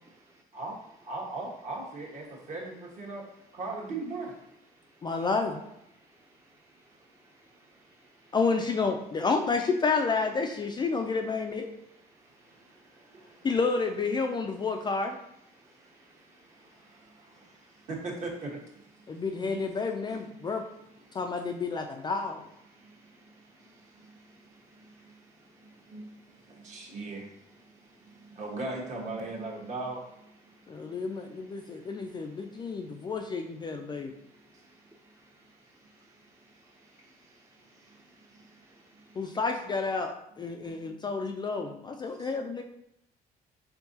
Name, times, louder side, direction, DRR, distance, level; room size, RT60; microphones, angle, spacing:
voice 1, 0.5-4.4 5.3-5.7 12.4-14.0 15.4-15.5 16.3-19.8 20.1-21.1 21.4-21.5 22.8-23.3 23.7-25.2 25.6-26.1 26.5-27.4 27.6-30.1 30.8-30.9 31.2-31.4 37.9-38.0 38.3-38.6 38.9-39.5 40.3-40.7 41.0-41.3 42.1-42.3, right 3 dB, 45° right, -2 dB, 1.3 m, -41 dB
voice 2, 5.0-5.6 8.3-11.7 13.4-15.2 19.1-20.6 21.1-22.4 30.8-34.1 39.2-42.6, left 4 dB, 25° left, 4 dB, 0.3 m, -30 dB
voice 3, 7.2-7.6 7.9-8.4 13.1-13.3 13.7-14.4 14.9-15.0 16.1-17.0 19.8-19.9 22.8-22.9 24.8-25.1 28.9-29.0 34.5-34.7 36.9-37.1 37.6-38.8, right 2 dB, 15° right, -2 dB, 0.6 m, -61 dB
4.6 x 3.6 x 2.7 m, 0.77 s
cardioid pair, 110°, 17 cm